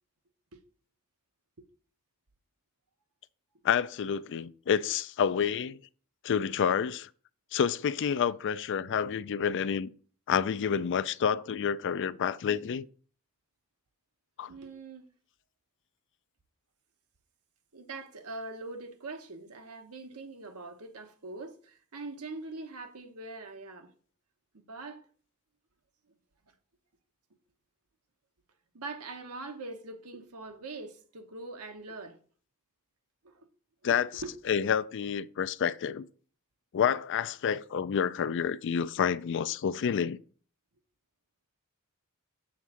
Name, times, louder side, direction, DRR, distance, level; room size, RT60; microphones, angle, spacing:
voice 1, 3.6-5.8 6.2-7.1 7.5-9.9 10.3-12.9 14.4-14.5 33.8-34.1 34.5-36.1 36.7-40.2, left 7 dB, 55° left, 0.4 m, -29 dB
voice 2, 14.5-15.1 17.7-23.9 24.5-25.1 28.7-32.2 33.2-33.5 33.8-34.3 35.9-36.0, right 3 dB, 80° right, 1.1 m, -43 dB
7.2 x 3.6 x 6.2 m
head